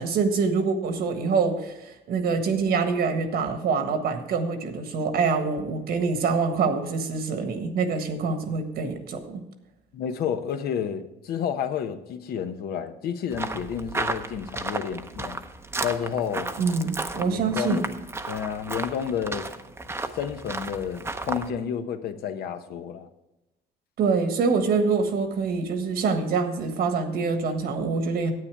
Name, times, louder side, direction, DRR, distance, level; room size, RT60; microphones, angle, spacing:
voice 1, 0.0-9.4 16.6-17.8 24.0-28.3, right 4 dB, 65° right, 1.5 m, -25 dB
voice 2, 9.9-15.4 15.8-16.5 17.1-18.0 18.3-19.5 20.1-23.1, left 8 dB, 70° left, 0.9 m, -30 dB
sound 1, 13.3-21.5, right 2 dB, 15° right, 0.7 m, -33 dB
9.7 x 8.6 x 4.7 m
cardioid pair, 110°, 17 cm